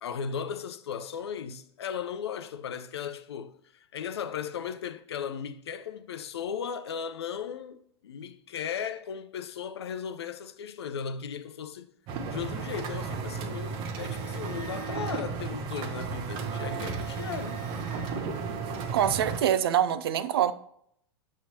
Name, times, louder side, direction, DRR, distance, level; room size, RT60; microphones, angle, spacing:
voice 1, 0.0-11.9 12.3-17.6, left 7 dB, 75° left, 0.6 m, -36 dB
sound 1, 12.1-19.4, right 5 dB, 40° right, 0.9 m, -34 dB
voice 2, 18.9-20.5, right 10 dB, 65° right, 0.5 m, -25 dB
6.9 x 6.3 x 2.8 m
hypercardioid pair, 95°, 14 cm